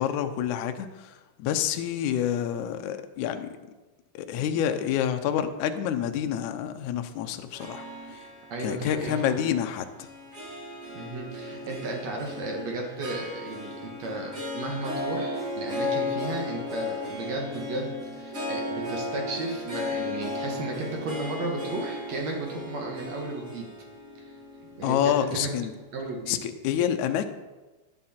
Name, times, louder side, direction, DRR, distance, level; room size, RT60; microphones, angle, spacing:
voice 1, 0.0-3.5 4.1-7.9 8.1-8.2 8.6-9.9 24.8-25.7 26.3-27.3, left 9 dB, 80° left, 7 dB, 1.7 m, -28 dB
Harp, 7.5-26.0, left 2 dB, 90° right, 0.6 m, -35 dB
voice 2, 8.5-9.5 10.9-23.7 24.2-24.4 24.8-25.5 25.9-26.4, right 2 dB, 55° right, 1 dB, 2.5 m, -34 dB
12.0 x 11.5 x 4.4 m, 1.2 s
omnidirectional pair, 4.4 m